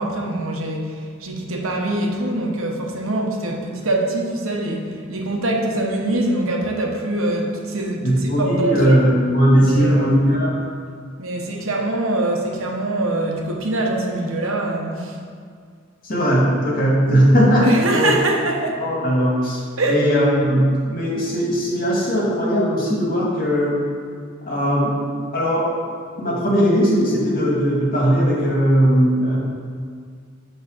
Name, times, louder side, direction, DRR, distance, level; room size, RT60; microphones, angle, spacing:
voice 1, 0.0-9.0 9.5-10.3 11.2-15.2 17.6-18.8 19.8-20.0, right 1 dB, 85° right, 1 dB, 1.1 m, -24 dB
voice 2, 8.0-10.6 16.0-17.7 17.9-18.1 18.8-23.8 24.5-25.0 25.3-25.7 26.2-29.4, equal, 45° left, -5 dB, 2.0 m, -18 dB
8.3 x 3.3 x 6.5 m, 2.1 s
head